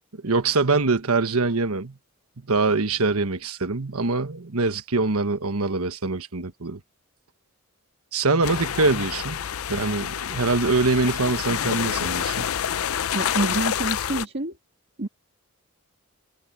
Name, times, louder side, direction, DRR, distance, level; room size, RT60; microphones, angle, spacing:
voice 1, 0.2-2.0 2.4-6.8 8.1-9.4 9.7-12.5, right 3 dB, 85° right, 1.3 m, -24 dB
sound 1, 8.4-14.3, left 9 dB, 75° left, 0.5 m, -28 dB
voice 2, 13.1-14.6 15.0-15.1, right 2 dB, 50° right, 2.0 m, -27 dB
head